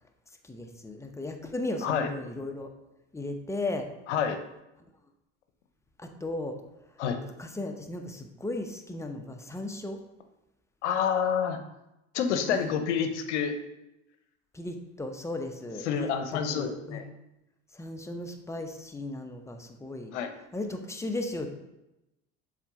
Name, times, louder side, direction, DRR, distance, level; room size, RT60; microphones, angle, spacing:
voice 1, 0.4-2.7 3.1-3.9 6.0-6.6 7.4-10.0 12.5-12.7 14.5-17.0 17.7-20.1 20.5-21.5, left 2 dB, 10° left, 4 dB, 0.8 m, -36 dB
voice 2, 4.1-4.4 7.0-7.2 10.8-11.6 12.1-13.5 15.8-17.0 20.1-20.3, left 7 dB, 80° left, 7 dB, 0.8 m, -28 dB
7.2 x 4.3 x 3.6 m, 0.92 s
hypercardioid pair, 65°, 35 cm